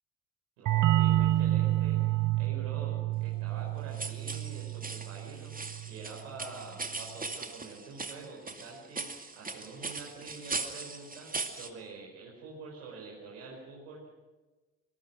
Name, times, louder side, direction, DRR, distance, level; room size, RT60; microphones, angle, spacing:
voice 1, 0.6-9.1 9.3-14.1, right 4 dB, 70° right, -2 dB, 5.1 m, -46 dB
sound 1, 0.7-6.1, right 15 dB, 50° right, 0.9 m, -29 dB
sound 2, 3.9-11.7, right 3 dB, 20° right, 2.4 m, -39 dB
23.5 x 21.5 x 6.2 m, 1.2 s
figure-of-eight pair, 45°, 41 cm